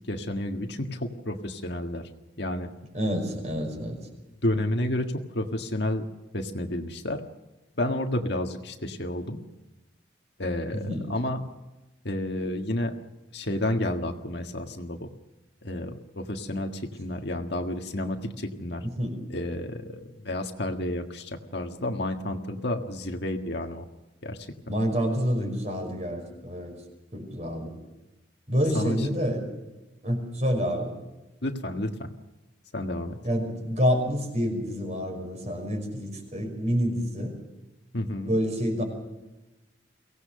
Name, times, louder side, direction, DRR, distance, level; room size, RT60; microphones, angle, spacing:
voice 1, 0.1-2.0 2.4-2.7 4.4-6.0 6.3-7.2 7.8-9.4 10.4-11.5 12.0-12.9 13.3-15.1 15.6-18.9 19.3-23.8 24.2-24.5 28.7-29.0 31.4-32.1 32.7-33.2 37.9-38.4, left 1 dB, 55° left, 5 dB, 1.7 m, -30 dB
voice 2, 2.9-4.0 10.7-11.0 18.8-19.2 24.7-26.8 27.1-27.8 28.5-29.5 30.0-30.9 33.2-37.3 38.3-38.8, equal, 35° right, 3 dB, 5.6 m, -28 dB
23.5 x 17.5 x 6.6 m, 1.0 s
head